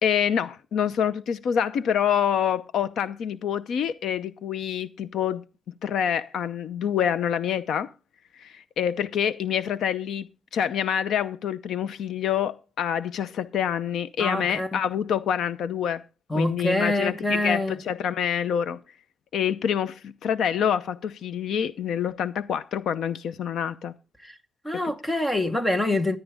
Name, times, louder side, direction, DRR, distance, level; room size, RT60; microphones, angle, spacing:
voice 1, 0.0-5.4 5.8-7.9 8.3-10.3 10.5-16.0 16.4-18.8 19.3-23.9, left 8 dB, 85° left, 0.7 m, -26 dB
voice 2, 14.2-14.8 16.3-17.8 24.2-24.3 24.6-26.2, left 1 dB, 10° left, 1.1 m, -25 dB
14.0 x 10.0 x 3.6 m
wide cardioid pair, 170°, 0 cm